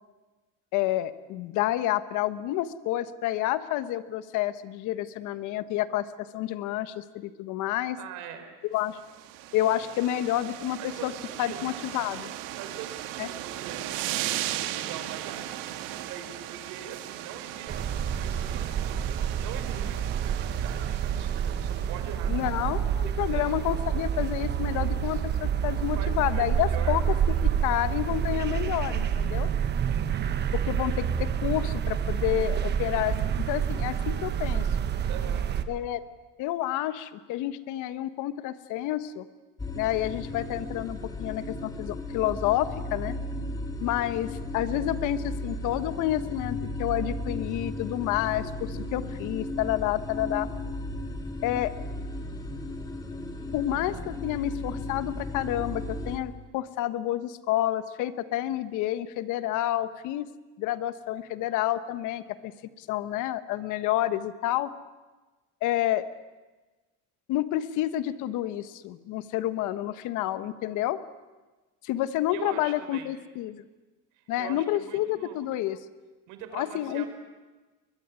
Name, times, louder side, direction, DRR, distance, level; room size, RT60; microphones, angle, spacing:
voice 1, 0.7-8.0 8.7-9.0 9.5-11.1 11.4-12.3 13.2-13.3 22.3-27.0 27.3-29.5 30.5-33.2 33.5-34.7 35.7-36.0 36.4-39.2 39.7-43.1 43.8-50.5 51.4-51.7 53.5-60.3 60.6-62.5 62.8-64.7 65.6-66.1 67.3-71.0 71.8-73.6 74.3-75.8 76.5-77.0, left 13 dB, 65° left, 12 dB, 1.3 m, -29 dB
voice 2, 8.0-8.5 10.8-11.7 12.6-15.7 16.1-19.1 19.4-22.5 22.8-23.6 24.8-25.2 25.9-27.0 35.1-35.5 72.3-73.1 74.1-75.5 76.3-77.1, right 9 dB, 65° right, 8 dB, 4.3 m, -43 dB
sound 1, 9.0-22.2, right 13 dB, 85° right, 1.8 m, -37 dB
sound 2, 17.7-35.6, right 8 dB, 30° right, 1.2 m, -28 dB
sound 3, 39.6-56.2, left 1 dB, 10° left, 2.0 m, -35 dB
22.0 x 22.0 x 9.7 m, 1.2 s
cardioid pair, 165°, 33 cm